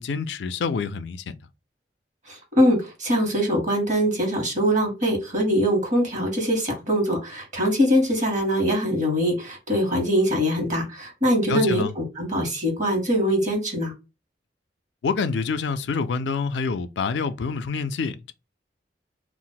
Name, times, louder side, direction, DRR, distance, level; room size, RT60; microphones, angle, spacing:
voice 1, 0.0-1.4 11.5-11.9 15.0-18.3, left 5 dB, 80° left, 0.4 m, -27 dB
voice 2, 2.3-13.9, equal, 45° right, 1.2 m, -23 dB
2.4 x 2.0 x 3.8 m
head